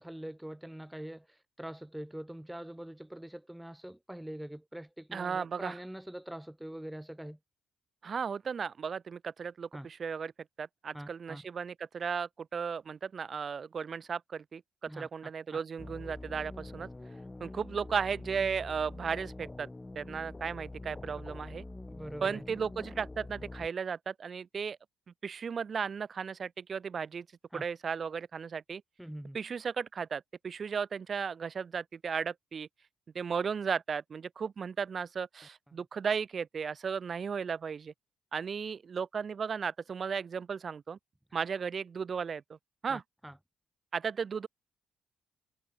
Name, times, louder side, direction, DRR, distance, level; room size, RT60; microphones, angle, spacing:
voice 1, 0.0-7.4 9.7-9.9 10.9-11.4 14.9-15.1 15.5-15.6 21.9-22.4 27.5-27.6 29.0-29.4 42.9-43.4, right 1 dB, 5° right, 1.1 m, -44 dB
voice 2, 5.1-5.7 8.0-10.3 10.6-16.9 17.4-19.7 20.0-21.6 22.2-24.8 25.2-27.3 27.5-28.8 29.3-32.7 33.1-37.9 38.3-41.0 41.3-42.6 42.8-43.0 43.9-44.5, right 6 dB, 45° right, 2.1 m, -35 dB
sound 1, 15.8-23.7, left 2 dB, 15° left, 2.6 m, -45 dB
cardioid pair, 90°, 0 cm